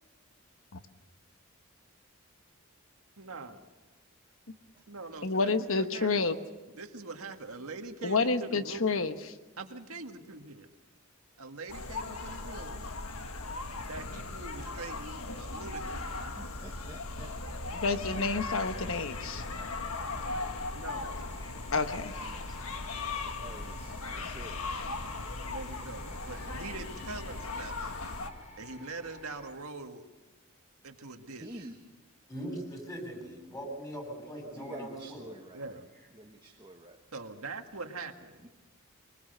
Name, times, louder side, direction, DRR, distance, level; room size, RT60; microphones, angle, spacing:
voice 1, 3.2-3.6 4.9-6.3 6.7-9.0 9.6-10.7 11.4-12.9 13.9-16.3 18.1-18.3 20.7-21.2 25.5-28.0 28.6-30.0 30.8-31.7 35.5-35.8 37.1-38.4, right 3 dB, 80° right, 5 dB, 1.8 m, -43 dB
voice 2, 5.2-6.4 8.0-9.1 17.7-19.4 21.7-22.3, left 4 dB, 65° left, 9 dB, 1.1 m, -29 dB
sound 1, 11.7-28.3, left 3 dB, 80° left, 1.6 m, -38 dB
voice 3, 16.4-17.3 19.6-19.7 23.4-24.6 31.4-31.8 34.5-35.8 36.1-37.0 38.4-38.5, right 1 dB, 20° right, 1 dB, 1.2 m, -48 dB
sound 2, 19.1-29.5, left 2 dB, 30° left, 6.4 m, -50 dB
voice 4, 32.3-35.2, right 1 dB, 15° left, 2 dB, 6.8 m, -40 dB
24.0 x 20.5 x 6.7 m, 1.2 s
head